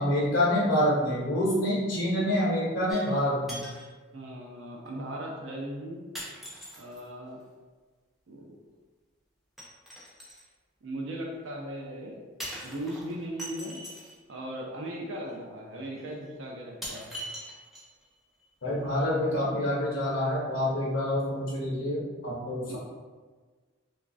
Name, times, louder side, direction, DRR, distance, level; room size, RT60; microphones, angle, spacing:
voice 1, 0.0-3.6 18.6-22.8, left 1 dB, 70° left, -7 dB, 0.6 m, -27 dB
sound 1, 2.9-3.2 3.5-3.9 4.9-5.0 6.1-7.1 9.6-10.5 12.4-14.2 15.3-15.4 16.0-16.1 16.8-18.1 18.4-18.5, equal, ahead, 0.4 m, -41 dB
voice 2, 4.1-6.0 6.8-7.4 8.3-8.6 10.8-12.2 12.6-13.8 14.3-17.2 22.7-22.8, right 1 dB, 70° right, -1 dB, 0.4 m, -38 dB
3.0 x 2.4 x 2.5 m, 1.4 s
head